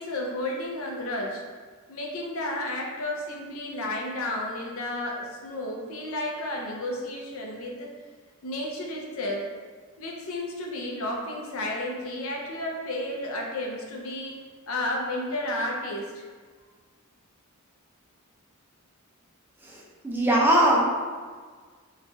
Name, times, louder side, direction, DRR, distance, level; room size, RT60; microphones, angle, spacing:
voice 1, 0.0-1.4 1.9-7.9 8.4-9.4 10.0-16.3, left 1 dB, 70° left, -1 dB, 0.5 m, -32 dB
voice 2, 19.6-20.8, right 1 dB, 10° right, -4 dB, 0.4 m, -21 dB
3.1 x 2.2 x 2.6 m, 1.5 s
head